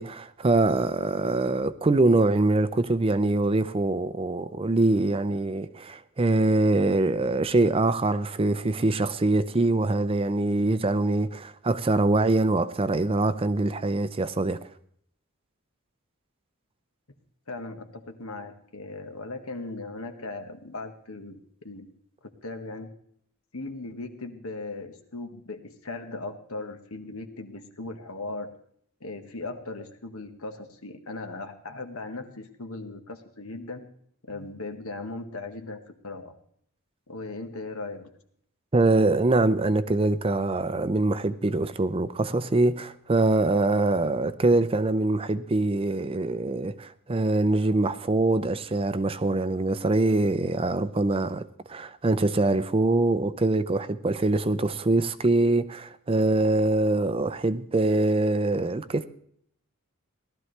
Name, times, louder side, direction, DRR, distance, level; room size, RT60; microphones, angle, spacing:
voice 1, 0.0-14.6 38.7-51.4 51.7-59.0, right 2 dB, 25° right, 0.5 m, -24 dB
voice 2, 17.5-21.9 22.4-22.9 23.5-28.6 29.0-33.9 34.3-36.3 37.1-38.1, left 2 dB, 80° left, 1.5 m, -38 dB
18.0 x 12.5 x 3.3 m
head